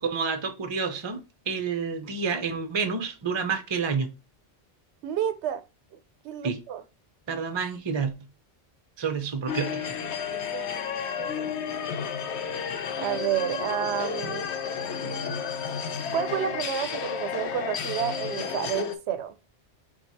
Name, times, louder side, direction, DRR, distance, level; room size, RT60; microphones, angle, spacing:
voice 1, 0.0-4.1 6.4-6.6 7.3-8.1 9.0-9.9, right 5 dB, 30° right, 0.6 m, -29 dB
voice 2, 5.0-5.6 6.2-6.8 10.3-11.5 13.0-14.5 16.1-19.4, right 9 dB, 85° right, 0.9 m, -30 dB
sound 1, 9.5-19.0, left 7 dB, 85° left, 0.9 m, -32 dB
4.7 x 2.3 x 4.0 m
omnidirectional pair, 1.1 m